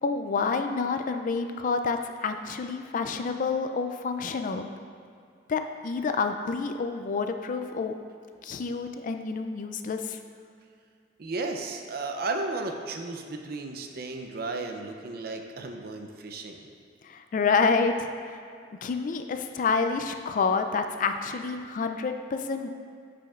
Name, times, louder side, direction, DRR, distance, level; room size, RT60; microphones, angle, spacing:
voice 1, 0.0-4.7 5.5-7.9 8.4-10.2 17.0-18.4 18.7-22.7, left 4 dB, 50° left, 7 dB, 0.4 m, -28 dB
voice 2, 11.2-16.6, right 3 dB, 60° right, 4 dB, 0.6 m, -34 dB
10.0 x 5.1 x 2.4 m, 2.3 s
head